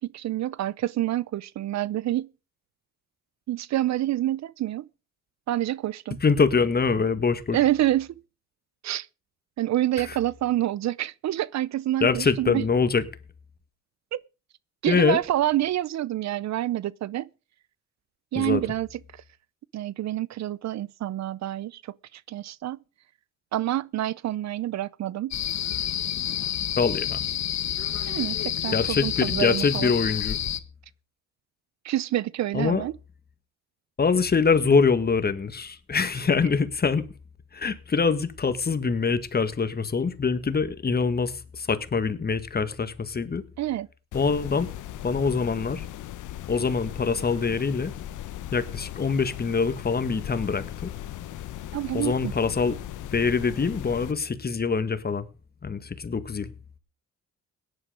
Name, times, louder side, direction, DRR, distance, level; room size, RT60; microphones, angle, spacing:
voice 1, 0.0-2.3 3.5-4.9 5.5-6.2 7.5-8.1 8.8-9.1 9.6-12.7 14.1-14.2 14.8-17.3 18.3-19.2 19.7-22.8 23.5-25.4 28.1-29.9 31.8-32.9 43.6-43.9 51.7-52.3, right 14 dB, 65° right, 0.6 m, -27 dB
voice 2, 6.2-7.6 10.1-10.2 12.0-13.0 14.9-15.2 18.3-18.6 26.8-27.2 28.7-30.4 32.5-32.8 34.0-37.0 37.5-43.4 44.1-44.7 45.0-45.8 46.5-47.9 48.5-50.9 51.9-52.8 53.1-55.3 55.6-56.5, left 5 dB, 30° left, 1.7 m, -24 dB
sound 1, 25.3-30.6, left 10 dB, 60° left, 1.3 m, -29 dB
sound 2, 44.1-54.1, left 12 dB, 80° left, 1.1 m, -38 dB
17.0 x 10.5 x 5.0 m
cardioid pair, 90°, 30 cm